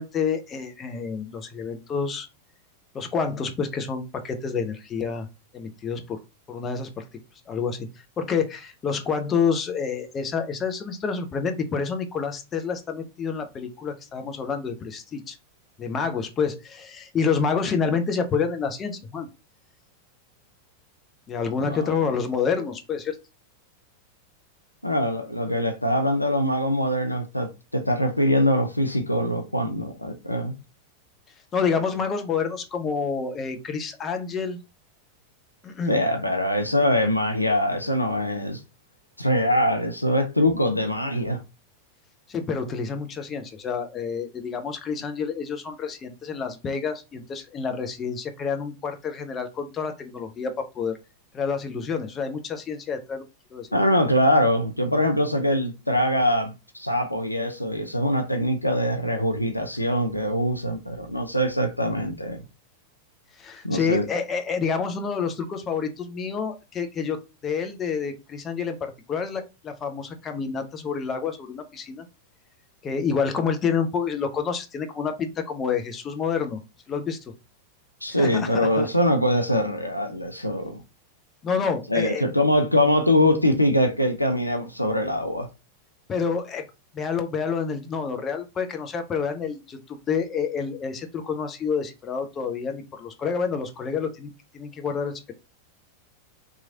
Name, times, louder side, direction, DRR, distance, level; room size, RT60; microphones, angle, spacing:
voice 1, 0.0-2.3 2.9-5.3 5.5-6.2 6.5-7.0 7.5-7.9 8.2-15.4 15.8-19.3 21.3-23.2 31.5-34.6 35.6-36.0 42.3-51.0 51.3-53.2 53.5-53.7 63.4-72.0 72.8-76.6 76.9-77.2 78.2-78.9 81.4-82.2 86.1-86.7 86.9-95.3, left 6 dB, 25° left, 0.5 m, -28 dB
voice 2, 21.6-21.9 24.8-30.6 35.9-38.6 39.2-41.4 53.7-62.4 63.6-64.0 78.0-80.8 81.9-85.5, left 1 dB, 85° left, 0.4 m, -23 dB
2.9 x 2.4 x 2.7 m
figure-of-eight pair, 90°, 0 cm